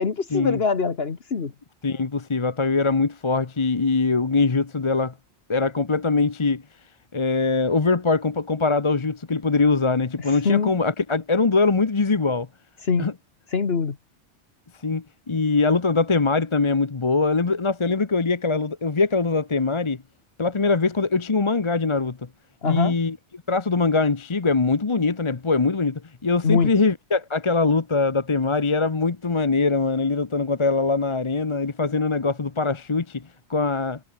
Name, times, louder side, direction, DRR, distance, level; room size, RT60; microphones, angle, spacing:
voice 1, 0.0-1.5 10.5-10.7 12.8-13.1 13.5-14.0 22.6-23.0 26.4-26.7, left 5 dB, 60° left, 1.7 m, -23 dB
voice 2, 1.8-5.1 5.5-6.6 7.1-12.5 13.0-13.1 14.8-20.0 20.4-22.2 22.6-23.2 23.5-33.2 33.5-34.0, left 4 dB, 30° left, 0.9 m, -22 dB
omnidirectional pair, 1.2 m